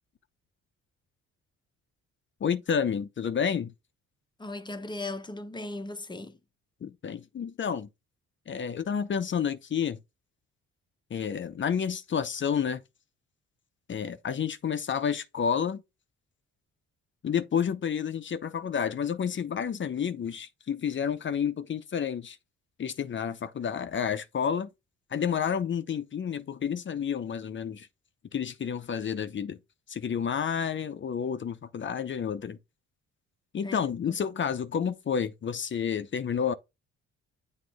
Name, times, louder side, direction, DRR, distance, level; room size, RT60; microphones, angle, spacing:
voice 1, 2.4-3.7 6.8-7.9 8.5-10.0 11.1-12.8 13.9-15.8 17.2-22.4 22.8-24.7 25.1-27.9 28.3-29.6 29.9-32.6 33.5-36.5, left 7 dB, 40° left, 0.7 m, -30 dB
voice 2, 4.4-6.4 33.6-33.8 34.1-34.2, left 2 dB, 15° left, 0.9 m, -37 dB
7.6 x 3.1 x 4.8 m
cardioid pair, 90°, 30 cm